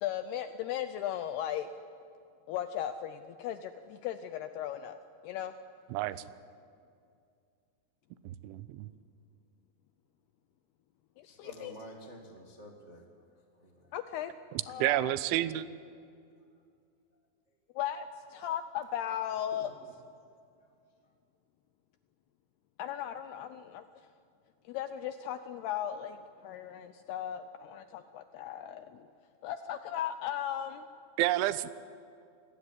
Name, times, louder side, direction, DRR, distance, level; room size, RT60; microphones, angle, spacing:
voice 1, 0.0-1.7 2.5-5.5 11.2-11.8 13.9-14.3 14.7-15.1 17.8-19.7 22.8-23.8 24.7-29.1 29.4-30.9, left 10 dB, 80° left, 10 dB, 2.3 m, -37 dB
voice 2, 8.4-8.9 14.8-15.7 31.2-31.7, right 14 dB, 85° right, 15 dB, 3.1 m, -29 dB
voice 3, 11.3-13.2 13.6-13.9 14.7-15.1 15.4-15.5 19.5-19.7, right 1 dB, 55° right, 1 dB, 0.7 m, -51 dB
26.0 x 19.0 x 9.8 m, 2.4 s
omnidirectional pair, 5.4 m